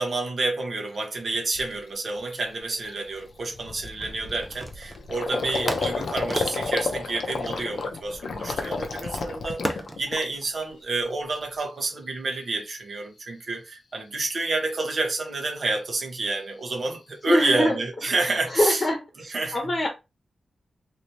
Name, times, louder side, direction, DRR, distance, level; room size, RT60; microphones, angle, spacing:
voice 1, 0.0-18.8 19.3-19.6, right 3 dB, 50° right, 1.1 m, -29 dB
Gurgling, 0.9-1.0 1.5-1.8 2.2-2.3 2.6-10.6 11.0-11.6, left 4 dB, 75° left, 0.6 m, -32 dB
sound 1, 4.0-5.1 5.7-8.2 9.6-10.1, right 1 dB, 20° right, 0.5 m, -33 dB
voice 2, 17.3-17.8 18.1-19.0 19.5-19.9, left 1 dB, 40° left, 1.1 m, -24 dB
3.0 x 2.7 x 3.1 m
wide cardioid pair, 115°, 0 cm